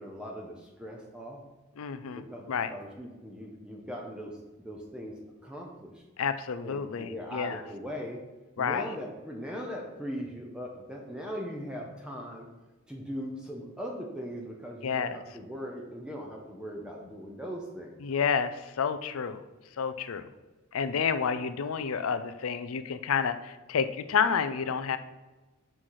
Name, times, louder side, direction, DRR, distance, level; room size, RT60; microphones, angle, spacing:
voice 1, 0.0-1.4 2.1-5.1 5.4-6.0 6.6-8.2 8.6-12.5 12.9-18.0, equal, 5° right, 0 dB, 0.8 m, -39 dB
voice 2, 1.8-2.7 6.2-7.6 8.6-8.8 14.8-15.2 18.0-19.4 19.8-20.3 20.7-25.0, left 6 dB, 80° left, 11 dB, 0.5 m, -30 dB
6.2 x 5.8 x 4.8 m, 1.2 s
head